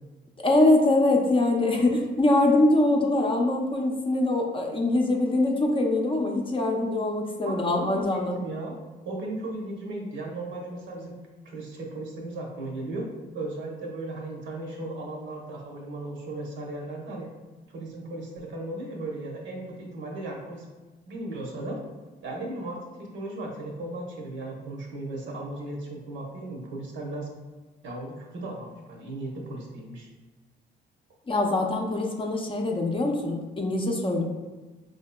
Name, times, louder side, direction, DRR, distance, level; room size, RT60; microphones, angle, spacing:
voice 1, 0.4-8.4 31.3-34.2, left 2 dB, 25° left, 1 dB, 0.6 m, -23 dB
voice 2, 7.4-8.7 9.0-11.2 11.4-13.1 13.3-17.3 17.7-20.7 21.1-21.8 22.2-27.3 27.8-30.1, right 2 dB, 70° right, -1 dB, 0.9 m, -36 dB
4.7 x 2.7 x 2.2 m, 1.2 s
cardioid pair, 90°, 20 cm